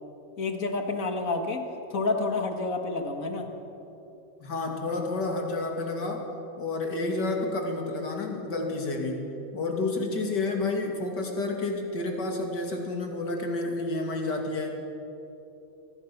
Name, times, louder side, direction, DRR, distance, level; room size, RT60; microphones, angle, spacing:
voice 1, 0.4-1.6 1.9-3.5, left 3 dB, 50° left, 4 dB, 2.2 m, -29 dB
voice 2, 4.4-6.3 6.6-9.3 9.5-14.8, left 2 dB, 80° left, 2 dB, 3.1 m, -30 dB
24.5 x 19.0 x 6.0 m, 3.0 s
omnidirectional pair, 1.8 m